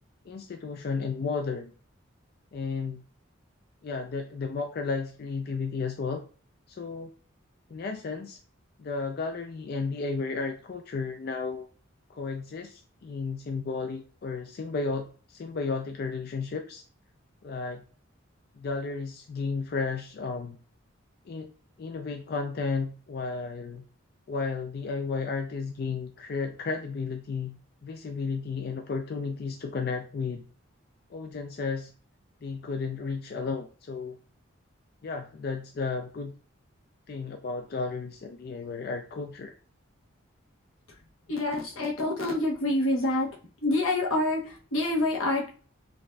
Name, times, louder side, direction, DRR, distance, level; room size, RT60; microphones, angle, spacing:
voice 1, 0.2-1.7 2.5-3.0 3.8-6.2 6.7-7.1 7.7-8.4 8.8-11.7 12.1-16.8 17.4-17.8 18.6-20.6 21.3-21.5 21.8-23.8 24.3-30.5 31.1-31.9 32.4-34.2 35.0-36.3 37.1-39.6, left 4 dB, 50° left, 4 dB, 0.3 m, -33 dB
voice 2, 41.3-43.3 43.6-45.5, left 2 dB, 85° left, -1 dB, 1.0 m, -27 dB
5.9 x 2.5 x 2.3 m, 0.41 s
head